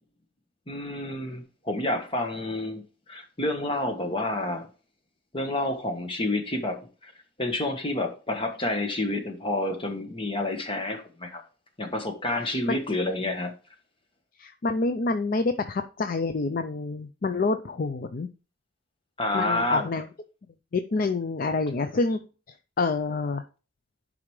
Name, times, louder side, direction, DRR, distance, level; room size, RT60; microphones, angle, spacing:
voice 1, 0.7-4.7 5.3-7.1 7.4-11.4 11.8-13.5 19.2-19.9, left 2 dB, 30° left, 1.3 m, -29 dB
voice 2, 14.4-18.3 19.3-20.1 20.7-22.2 22.8-23.4, left 3 dB, 50° left, 0.5 m, -27 dB
11.0 x 5.0 x 3.2 m
head